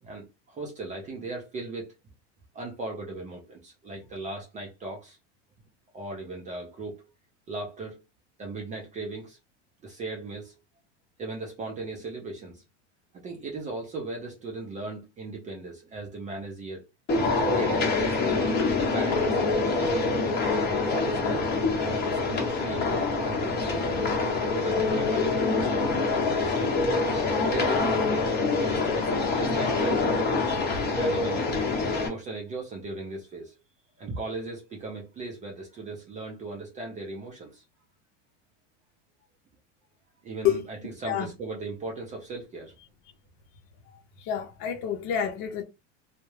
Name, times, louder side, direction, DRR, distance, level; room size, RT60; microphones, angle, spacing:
voice 1, 0.0-1.9 2.5-5.2 5.9-7.1 7.5-8.0 8.4-9.4 9.8-10.6 11.2-12.6 13.1-16.8 17.5-18.6 18.9-19.7 20.7-21.5 22.0-23.7 24.5-26.7 27.5-30.1 30.9-31.5 32.0-33.6 34.0-37.6 40.2-42.7, right 3 dB, 20° right, 0.4 m, -37 dB
sound 1, 17.1-32.1, left 3 dB, 30° left, 0.9 m, -25 dB
voice 2, 44.2-45.6, left 9 dB, 55° left, 0.6 m, -28 dB
2.2 x 2.0 x 3.0 m
supercardioid pair, 130°, 36 cm